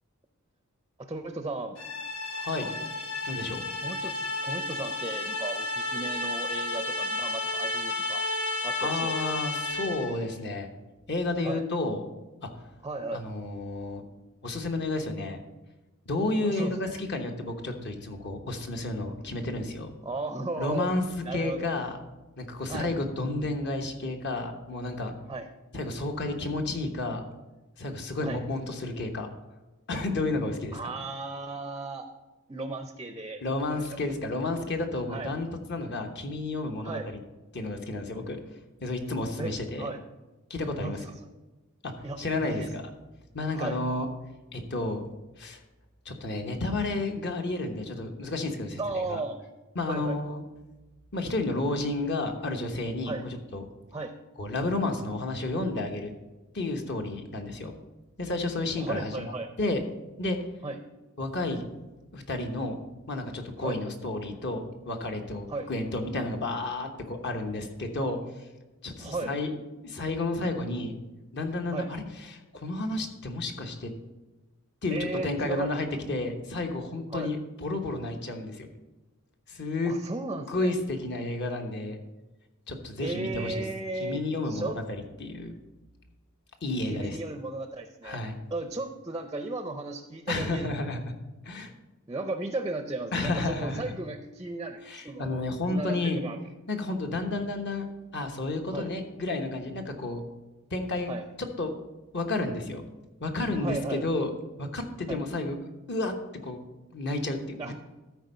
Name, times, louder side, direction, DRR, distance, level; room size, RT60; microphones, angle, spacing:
voice 1, 1.0-1.8 3.8-8.3 8.6-9.1 11.4-11.7 12.8-13.2 16.4-17.0 20.0-20.9 21.2-21.7 22.7-22.9 25.3-25.5 28.2-28.4 30.7-32.1 32.5-33.4 33.7-33.9 35.1-35.3 36.8-37.1 39.4-40.0 40.8-41.1 42.0-42.7 43.5-43.8 48.8-49.4 49.9-50.2 53.1-53.3 53.9-54.1 58.8-59.5 60.6-60.8 63.6-63.8 65.5-65.7 69.0-69.3 71.7-71.9 74.9-75.8 77.1-77.3 79.8-80.7 83.0-84.8 86.9-88.2 88.5-90.9 92.1-95.4 95.7-96.4 98.7-98.9 101.1-101.3 103.6-104.1 105.1-105.2 107.6-107.7, right 2 dB, 20° right, 7 dB, 0.5 m, -35 dB
sound 1, 1.8-10.2, left 2 dB, 80° left, 1.4 m, -32 dB
voice 2, 2.3-2.7 3.2-3.6 8.8-10.7 11.1-12.0 12.4-12.5 13.1-14.0 14.4-15.4 16.1-19.9 20.6-21.0 21.3-22.0 22.4-25.1 25.7-27.2 27.8-29.3 29.9-30.9 33.4-37.2 37.5-38.4 38.8-39.9 40.5-41.0 41.8-41.9 42.2-42.8 43.3-44.1 44.5-45.1 45.4-45.6 46.0-49.2 49.7-50.4 51.1-53.7 54.4-56.1 56.5-57.7 58.2-59.3 59.6-59.8 60.2-60.4 61.2-61.6 62.1-62.8 63.1-68.2 68.8-69.5 69.8-70.9 71.3-72.0 72.3-73.9 74.8-78.7 79.5-80.0 80.5-82.0 82.7-83.6 84.0-85.5 86.6-87.2 88.0-88.4 90.3-91.1 91.4-91.7 93.1-93.9 94.8-96.2 96.7-97.9 98.1-100.2 100.7-101.1 101.6-101.7 102.1-102.8 103.2-105.6 105.9-106.1 106.4-106.6 106.9-107.7, left 2 dB, 55° left, 4 dB, 1.1 m, -31 dB
13.0 x 4.6 x 5.4 m, 1.1 s
head